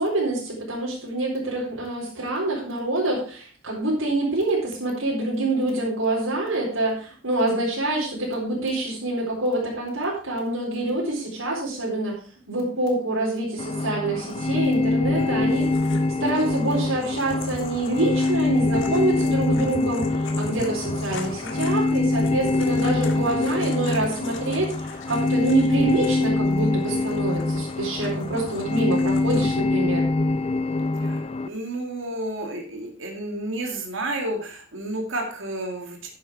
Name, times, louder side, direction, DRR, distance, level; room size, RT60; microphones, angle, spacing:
voice 1, 0.0-12.1 12.5-15.7 16.2-30.1, right 2 dB, 85° right, -4 dB, 4.2 m, -26 dB
sound 1, 13.6-31.5, left 2 dB, 30° left, 0.5 m, -24 dB
sound 2, 15.5-29.6, left 3 dB, 65° left, 1.9 m, -40 dB
voice 2, 31.0-36.1, right 1 dB, 70° right, 1 dB, 2.3 m, -31 dB
11.0 x 7.4 x 4.6 m, 0.41 s
head